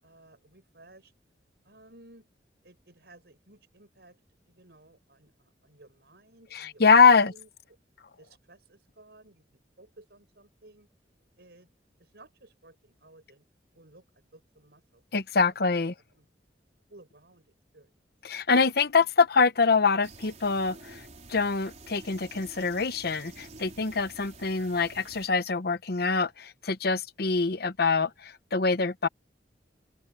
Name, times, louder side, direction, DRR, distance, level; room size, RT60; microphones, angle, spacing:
voice 1, 0.0-1.1 1.6-2.3 2.6-4.2 4.5-7.8 8.2-9.4 9.8-10.9 11.4-11.7 12.0-13.4 13.7-15.0 15.4-15.8 16.1-16.3 16.9-17.9 19.0-19.1, right 2 dB, 70° right, 6.0 m, -56 dB
voice 2, 6.5-7.3 15.1-15.9 18.2-21.0 21.3-29.1, left 4 dB, 60° left, 0.9 m, -24 dB
sound 1, 20.0-25.3, right 3 dB, 40° right, 5.1 m, -49 dB
open air
head